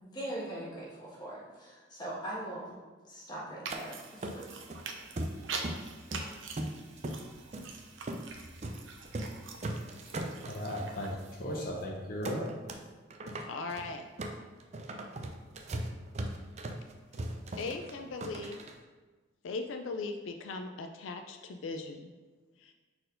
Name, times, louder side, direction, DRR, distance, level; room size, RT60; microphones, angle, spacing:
voice 1, 0.0-2.7 3.0-4.5, right 1 dB, 20° left, -6 dB, 1.5 m, -41 dB
sound 1, 3.6-11.1, right 4 dB, 80° right, 0.7 m, -44 dB
sound 2, 3.7-3.8 4.2-4.8 5.2-5.9 6.1-7.2 7.5-7.7 8.1-8.3 8.6-8.8 9.1-9.4 9.6-10.9 11.3-11.4 11.6-11.8 12.2-12.8 13.1-18.7, right 1 dB, 35° right, 0.4 m, -38 dB
voice 2, 10.5-12.5, equal, 45° left, -2 dB, 0.8 m, -36 dB
voice 3, 13.5-14.1 17.6-18.6 19.4-22.1 22.6-22.7, left 3 dB, 85° left, 6 dB, 0.4 m, -39 dB
4.4 x 4.3 x 5.1 m, 1.3 s
head